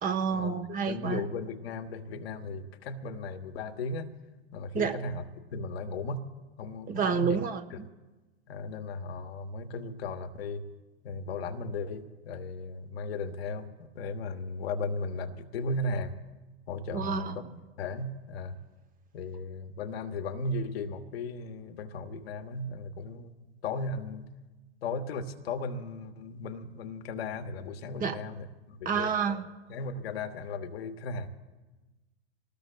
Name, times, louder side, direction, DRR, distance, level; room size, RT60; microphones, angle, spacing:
voice 1, 0.0-1.2 4.7-5.0 6.9-7.9 16.9-17.5 28.0-28.2 28.8-29.4, right 6 dB, 25° right, 7 dB, 1.1 m, -29 dB
voice 2, 0.9-4.1 4.5-5.2 5.5-6.2 6.6-7.4 8.5-10.6 11.0-16.1 16.7-17.4 17.8-18.5 19.1-23.3 23.6-24.3 24.8-28.4 28.7-29.1 29.7-31.4, left 3 dB, 65° left, 6 dB, 1.2 m, -36 dB
27.0 x 19.0 x 2.2 m, 1.2 s
figure-of-eight pair, 90°, 32 cm